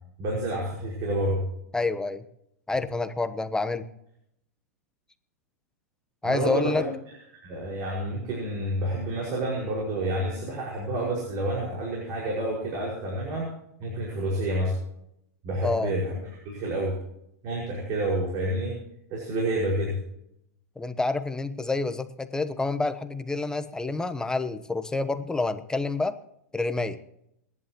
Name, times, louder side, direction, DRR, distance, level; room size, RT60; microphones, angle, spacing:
voice 1, 0.2-1.4 6.2-6.9 7.3-13.5 13.8-14.7 15.4-16.2 16.4-17.0 17.4-18.8 19.1-20.0, right 1 dB, 45° right, -3 dB, 5.5 m, -29 dB
voice 2, 1.7-2.2 2.7-3.9 6.2-6.8 15.6-15.9 20.8-26.2 26.5-27.0, left 3 dB, 10° left, 10 dB, 1.0 m, -28 dB
29.0 x 11.0 x 3.0 m, 0.77 s
hypercardioid pair, 115°, 9 cm